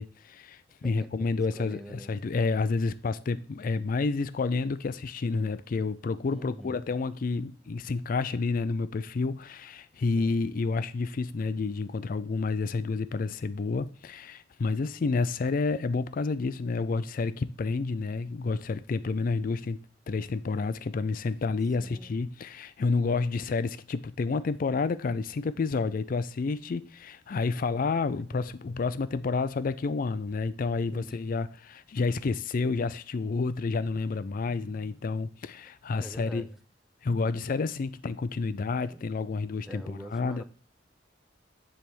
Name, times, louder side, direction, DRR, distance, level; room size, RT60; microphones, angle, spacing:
voice 1, 0.0-19.8 20.1-36.4 37.0-40.4, left 4 dB, 50° left, 0.4 m, -30 dB
voice 2, 0.8-1.3 1.6-2.1 6.3-6.9 10.2-10.4 21.8-22.2 28.3-28.5 30.9-31.2 36.0-36.6 38.5-39.1 39.7-40.4, right 1 dB, ahead, 0.5 m, -44 dB
10.0 x 3.5 x 6.0 m
head